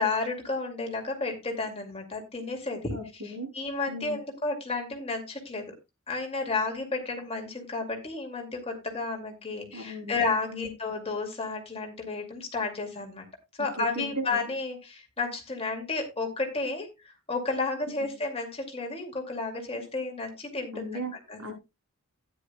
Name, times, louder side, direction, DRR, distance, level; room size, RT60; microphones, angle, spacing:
voice 1, 0.0-2.9 3.2-5.7 6.1-13.3 13.6-20.9 21.3-21.4, left 3 dB, 30° left, 3 dB, 2.3 m, -32 dB
voice 2, 2.9-3.5 3.9-4.2 9.7-10.2 10.5-10.7 13.8-14.4 20.7-21.1 21.4-21.5, equal, 80° right, 4 dB, 3.2 m, -36 dB
12.5 x 10.0 x 2.3 m, 0.23 s
head